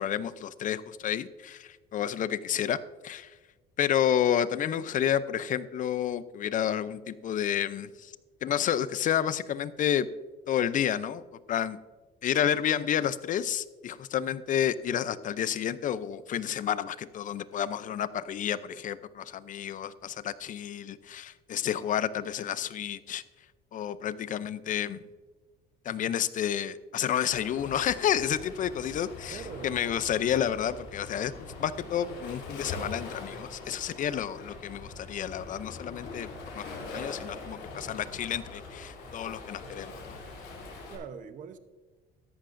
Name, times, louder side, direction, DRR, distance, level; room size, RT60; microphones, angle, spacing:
voice 1, 0.0-2.8 3.0-3.3 3.8-8.1 8.4-10.1 10.5-11.2 11.5-11.8 12.2-23.2 23.7-25.0 25.8-36.3 36.5-40.2, left 9 dB, 50° left, 15 dB, 0.6 m, -30 dB
Waves surf, 27.3-41.0, left 3 dB, 90° left, 3.3 m, -42 dB
voice 2, 29.3-29.9 40.9-41.6, right 6 dB, 50° right, 10 dB, 0.9 m, -42 dB
13.5 x 11.5 x 2.6 m, 1.3 s
cardioid pair, 110°, 17 cm